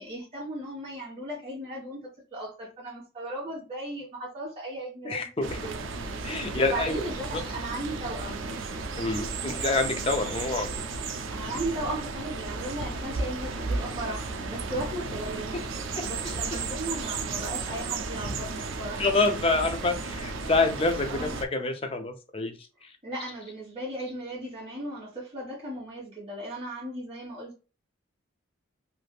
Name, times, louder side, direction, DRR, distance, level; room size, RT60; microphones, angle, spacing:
voice 1, 0.0-2.0 2.3-5.3 5.6-5.7 6.6-8.4 11.3-19.0 21.0-21.4 23.0-27.6, right 1 dB, 30° right, 1.6 m, -36 dB
voice 2, 5.0-5.6 6.2-7.0 7.3-7.4 9.0-10.7 16.0-16.3 19.0-22.6 22.8-22.9, left 3 dB, 30° left, 0.4 m, -27 dB
sound 1, 5.4-21.4, right 4 dB, 75° right, 0.4 m, -34 dB
3.3 x 2.6 x 2.4 m
head